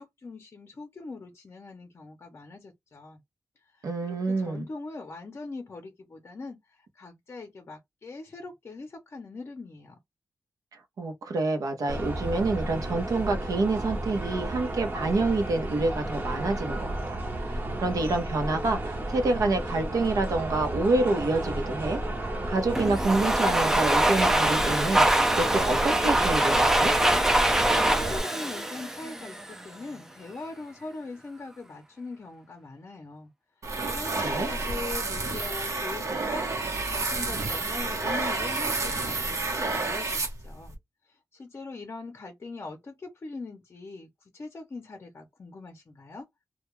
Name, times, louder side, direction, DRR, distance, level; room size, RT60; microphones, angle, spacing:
voice 1, 0.0-3.2 3.8-10.0 27.9-33.3 33.9-40.7 41.3-46.3, left 3 dB, 45° left, 0.6 m, -41 dB
voice 2, 3.8-4.7 11.0-22.0 22.5-25.0 25.4-26.9 34.2-34.5, right 2 dB, 90° right, 0.7 m, -27 dB
sound 1, 11.9-28.2, right 1 dB, 35° right, 0.7 m, -32 dB
Domestic sounds home sounds, 22.8-29.6, right 1 dB, 10° right, 0.4 m, -24 dB
sound 2, 33.6-40.8, right 3 dB, 65° right, 0.8 m, -30 dB
2.2 x 2.2 x 3.0 m
wide cardioid pair, 160°, 6 cm